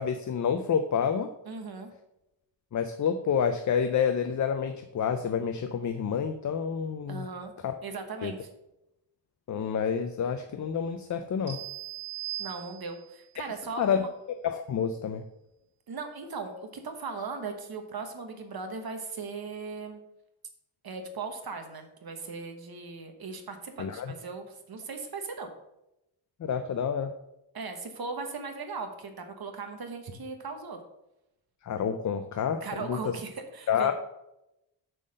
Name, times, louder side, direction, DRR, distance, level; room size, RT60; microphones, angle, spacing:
voice 1, 0.0-1.3 2.7-7.3 7.6-7.7 8.2-8.3 9.5-11.6 13.8-14.0 14.4-15.2 23.8-24.1 26.4-27.1 31.6-33.2 33.7-33.9, left 7 dB, 40° left, 8 dB, 0.4 m, -28 dB
voice 2, 1.4-1.9 7.1-7.5 7.8-8.5 12.4-14.1 15.9-20.0 20.8-25.5 27.5-30.8 32.6-33.9, right 4 dB, 50° right, 5 dB, 1.1 m, -38 dB
sound 1, 11.5-13.2, right 13 dB, 30° right, 1.7 m, -39 dB
7.6 x 3.9 x 6.4 m, 0.89 s
wide cardioid pair, 175°, 47 cm